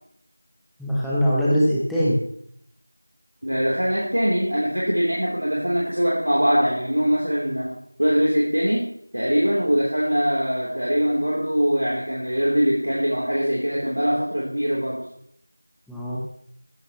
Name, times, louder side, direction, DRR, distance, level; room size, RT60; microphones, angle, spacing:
voice 1, 0.8-2.2 15.9-16.2, equal, ahead, -10 dB, 0.8 m, -21 dB
voice 2, 3.4-8.9 9.1-15.0, equal, 70° right, -4 dB, 3.2 m, -22 dB
15.0 x 14.0 x 3.0 m, 0.69 s
figure-of-eight pair, 175°, 0 cm